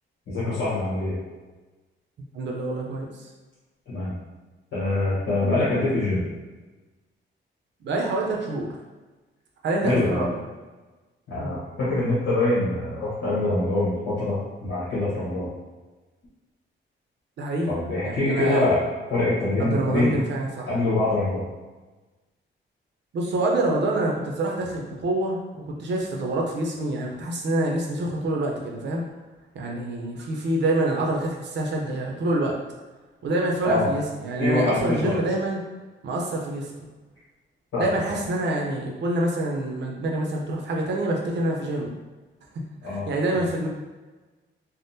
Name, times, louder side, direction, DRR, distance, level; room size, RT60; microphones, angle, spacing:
voice 1, 0.3-1.2 3.9-4.1 4.7-6.2 9.8-10.2 11.3-15.5 17.7-18.8 19.1-20.2 20.7-21.4 33.6-33.9 34.4-35.1 37.7-38.2 42.8-43.1 43.3-43.5, left 2 dB, 85° left, -11 dB, 1.1 m, -24 dB
voice 2, 2.3-3.3 7.8-8.8 9.6-10.4 11.4-11.6 17.4-17.7 18.0-18.7 19.6-20.7 23.1-29.0 29.5-32.6 33.2-35.6 36.0-36.7 37.8-42.0 42.8-43.7, right 2 dB, 60° right, 0 dB, 0.6 m, -26 dB
3.5 x 2.1 x 2.6 m, 1.2 s
wide cardioid pair, 180°, 21 cm